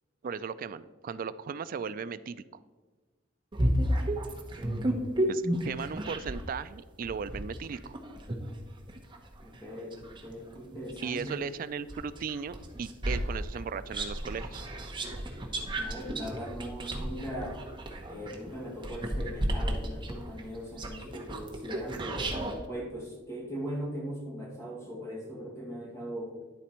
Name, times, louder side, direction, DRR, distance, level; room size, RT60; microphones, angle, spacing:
voice 1, 0.2-2.4 5.3-7.9 11.0-14.6, right 6 dB, 45° right, 14 dB, 0.3 m, -37 dB
sound 1, 3.5-6.5 7.0-11.4 11.9-22.6, right 1 dB, 25° right, 1.0 m, -33 dB
voice 2, 4.6-5.4 9.4-11.4 15.8-17.6 18.1-22.4 22.7-26.4, equal, 15° left, -2 dB, 1.9 m, -40 dB
10.5 x 4.1 x 4.3 m, 1.3 s
head